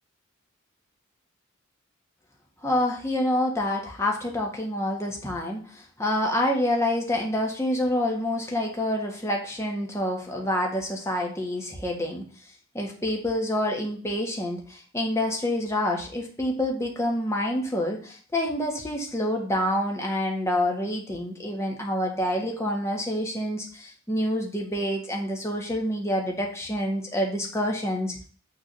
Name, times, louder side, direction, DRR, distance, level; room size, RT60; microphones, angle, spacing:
voice 1, 2.6-12.2 12.7-28.2, left 1 dB, 15° left, 0 dB, 1.5 m, -27 dB
6.6 x 4.0 x 6.3 m, 0.41 s
head